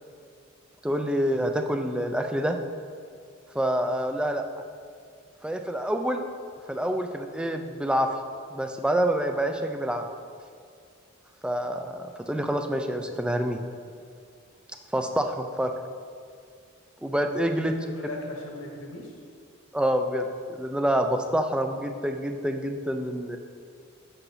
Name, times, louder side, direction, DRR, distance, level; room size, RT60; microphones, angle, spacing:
voice 1, 0.8-2.6 3.5-4.4 5.4-6.2 6.7-8.1 8.5-10.1 11.4-13.6 14.9-15.7 17.0-17.7 19.7-20.2 20.6-23.4, right 1 dB, 5° right, 5 dB, 0.4 m, -27 dB
voice 2, 17.8-19.1, left 1 dB, 60° left, 0 dB, 1.2 m, -38 dB
6.9 x 5.9 x 5.5 m, 2.3 s
head